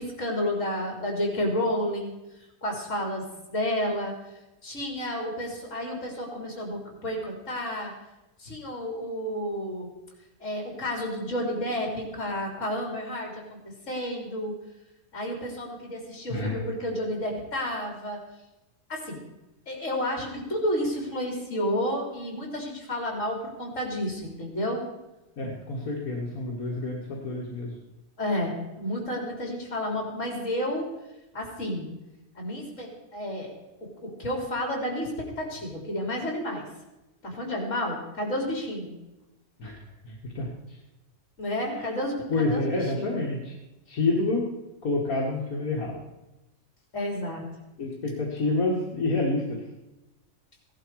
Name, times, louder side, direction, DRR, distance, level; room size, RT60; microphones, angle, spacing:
voice 1, 0.0-2.1 2.6-4.2 4.6-7.9 8.4-9.9 10.4-13.6 13.9-14.5 15.1-18.2 18.9-19.2 19.7-24.8 28.2-30.9 31.3-31.9 32.4-33.5 33.8-36.7 37.2-38.9 41.4-43.3 46.9-47.4, equal, 60° left, 0 dB, 3.7 m, -31 dB
voice 2, 25.4-27.8 39.6-39.8 40.0-40.5 42.3-43.5 43.9-44.5 44.8-46.0 47.8-49.6, left 2 dB, 80° left, -3 dB, 2.3 m, -28 dB
16.5 x 11.5 x 4.8 m, 0.98 s
omnidirectional pair, 1.5 m